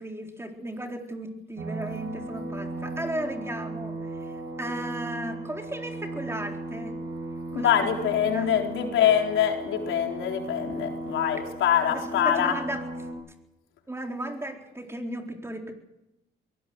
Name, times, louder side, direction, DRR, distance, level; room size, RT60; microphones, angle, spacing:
voice 1, 0.0-4.0 4.6-6.9 7.5-7.7 8.0-8.5 11.9-12.8 13.9-15.7, right 1 dB, 10° right, 4 dB, 4.1 m, -35 dB
sound 1, 1.6-13.1, right 2 dB, 85° right, 5.7 m, -36 dB
voice 2, 7.5-12.5, left 9 dB, 85° left, 3 dB, 4.3 m, -24 dB
22.5 x 18.0 x 7.9 m, 0.91 s
cardioid pair, 90°, 20 cm